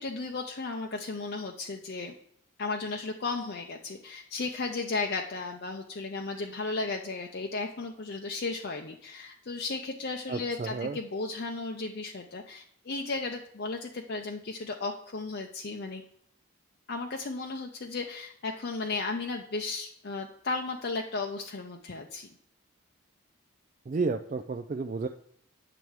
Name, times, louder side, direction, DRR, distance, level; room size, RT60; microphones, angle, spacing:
voice 1, 0.0-2.2 2.6-16.0 16.9-22.3, left 3 dB, 50° left, 2 dB, 0.6 m, -35 dB
voice 2, 10.3-11.0 23.9-25.1, right 4 dB, 35° right, 6 dB, 0.3 m, -31 dB
9.0 x 6.8 x 4.6 m, 0.67 s
head